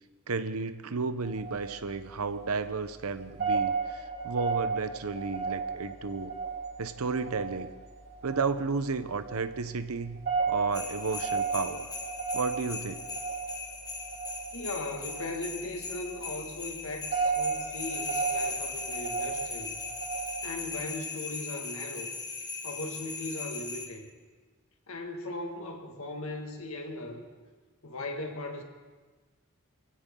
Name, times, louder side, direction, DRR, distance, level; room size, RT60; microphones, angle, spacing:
voice 1, 0.3-6.3 6.8-7.7 8.2-10.2 10.5-11.9 12.3-13.1, right 4 dB, 80° right, 12 dB, 0.8 m, -32 dB
sound 1, 1.2-20.8, right 5 dB, 45° right, 3.8 m, -34 dB
sound 2, 10.7-23.9, left 4 dB, 20° left, 1.6 m, -39 dB
voice 2, 14.5-19.8 20.4-22.1 22.6-24.1 24.9-27.2 27.8-28.6, left 2 dB, 70° left, 2 dB, 2.0 m, -38 dB
23.5 x 15.5 x 3.8 m, 1.4 s
head